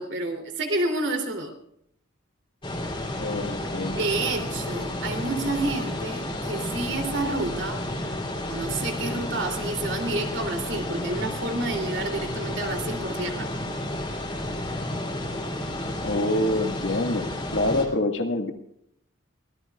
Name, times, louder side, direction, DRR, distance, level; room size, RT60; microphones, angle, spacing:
voice 1, 0.0-1.5 3.9-7.8 8.5-13.5, right 2 dB, 60° right, 4 dB, 3.0 m, -29 dB
sound 1, 2.6-17.9, left 1 dB, 25° left, 3.0 m, -31 dB
voice 2, 3.2-4.0 16.0-18.5, left 1 dB, 70° left, 5 dB, 1.8 m, -26 dB
23.5 x 17.5 x 2.4 m, 0.72 s
head